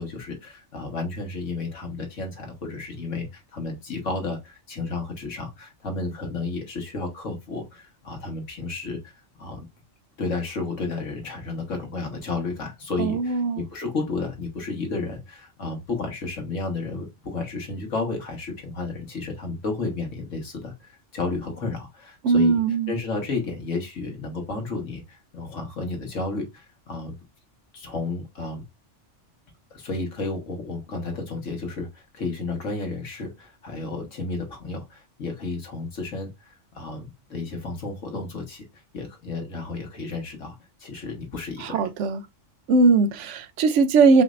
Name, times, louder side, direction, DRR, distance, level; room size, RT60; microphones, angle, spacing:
voice 1, 0.0-9.7 10.2-22.6 22.9-27.2 27.7-28.6 29.7-38.6 38.9-40.5 40.8-41.9, left 3 dB, 90° left, 1.8 m, -32 dB
voice 2, 13.0-13.6 22.2-23.0 41.6-42.2 42.7-44.2, right 4 dB, 75° right, 1.0 m, -20 dB
4.9 x 3.2 x 2.5 m
omnidirectional pair, 1.3 m